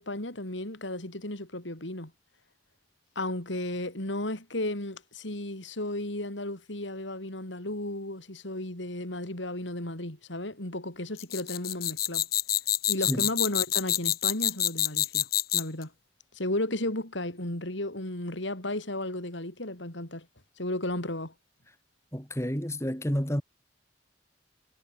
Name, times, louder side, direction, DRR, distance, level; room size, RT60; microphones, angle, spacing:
voice 1, 0.0-2.1 3.1-12.3 12.9-15.3 15.5-15.9 16.3-20.3 20.6-21.3, left 1 dB, 75° left, 4.7 m, -34 dB
sound 1, 11.2-15.8, left 13 dB, 50° left, 4.3 m, -27 dB
voice 2, 22.1-23.4, equal, 15° left, 4.0 m, -29 dB
head